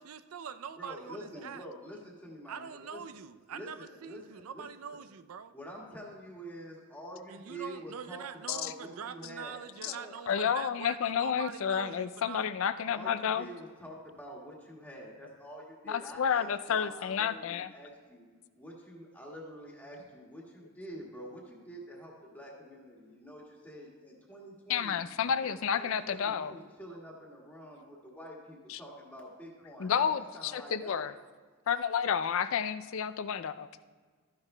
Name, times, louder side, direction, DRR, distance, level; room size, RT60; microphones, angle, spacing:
voice 1, 0.0-1.6 2.5-5.5 7.3-12.4, right 7 dB, 70° right, 11 dB, 0.4 m, -44 dB
voice 2, 0.8-3.0 3.5-4.7 5.5-10.2 12.8-18.3 18.5-25.0 25.4-31.1, equal, 10° left, -3 dB, 1.7 m, -47 dB
voice 3, 10.3-13.5 15.9-17.7 24.7-26.6 28.7-28.8 29.8-31.1 31.7-33.9, left 7 dB, 60° left, 14 dB, 0.4 m, -31 dB
14.0 x 10.5 x 2.2 m, 1.5 s
head